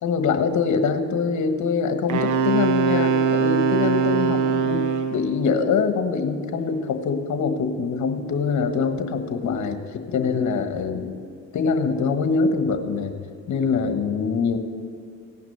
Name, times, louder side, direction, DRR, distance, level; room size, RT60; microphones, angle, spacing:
voice 1, 0.0-4.8 5.1-11.1 11.5-13.1 13.5-14.6, left 5 dB, 70° left, 7 dB, 1.4 m, -24 dB
Wind instrument woodwind instrument, 2.1-5.2, right 6 dB, 75° right, 1.0 m, -21 dB
16.5 x 6.0 x 9.2 m, 2.3 s
cardioid pair, 90°, 30 cm